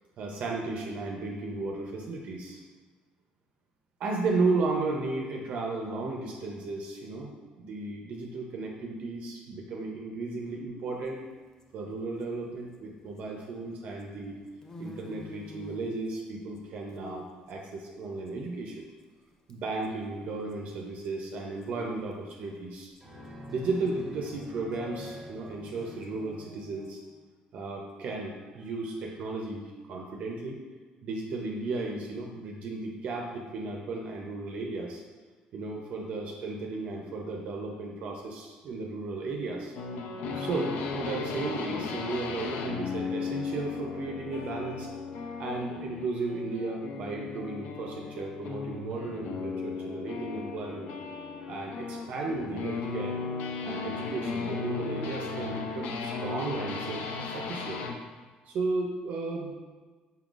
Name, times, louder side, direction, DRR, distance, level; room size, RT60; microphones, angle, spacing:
voice 1, 0.2-2.6 4.0-11.3 11.7-14.4 14.8-18.9 19.5-22.9 23.5-27.0 27.5-30.6 31.0-35.0 35.5-39.7 40.3-44.9 45.4-50.9 51.5-53.2 53.6-57.8 58.5-59.5, right 3 dB, 50° right, 0 dB, 0.5 m, -34 dB
sound 1, 10.9-13.5 13.8-19.2 19.5-19.9 20.1-20.2 20.5-23.1 23.3-26.9, left 1 dB, 20° left, 0.4 m, -51 dB
sound 2, 23.0-27.2, left 1 dB, 10° right, 1.1 m, -46 dB
sound 3, 39.7-58.0, left 4 dB, 75° left, 0.5 m, -36 dB
5.5 x 3.8 x 2.4 m, 1.4 s
cardioid pair, 150°, 3 cm